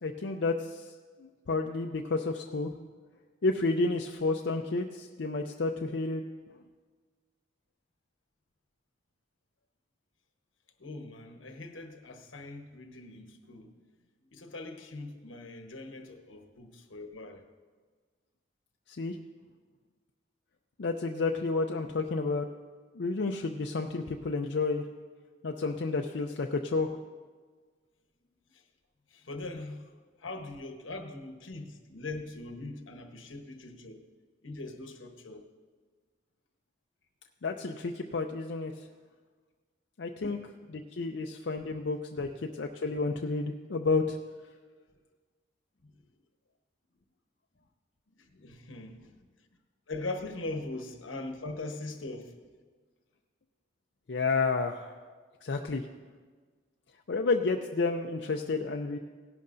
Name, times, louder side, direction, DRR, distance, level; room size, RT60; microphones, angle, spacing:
voice 1, 0.0-0.9 1.2-2.7 3.4-6.2 18.9-19.2 20.8-22.5 22.9-24.8 25.4-27.0 37.4-38.7 40.0-40.4 40.7-44.2 54.1-55.0 55.4-55.9 57.1-59.0, left 3 dB, 60° left, 0.5 m, -30 dB
voice 2, 10.8-13.7 14.3-17.4 28.5-28.6 29.1-29.9 30.2-34.0 34.4-35.5 40.2-40.4 42.2-42.3 45.8-46.0 48.1-49.2 49.9-52.4, left 2 dB, 85° left, 1.1 m, -41 dB
17.5 x 11.0 x 2.6 m
head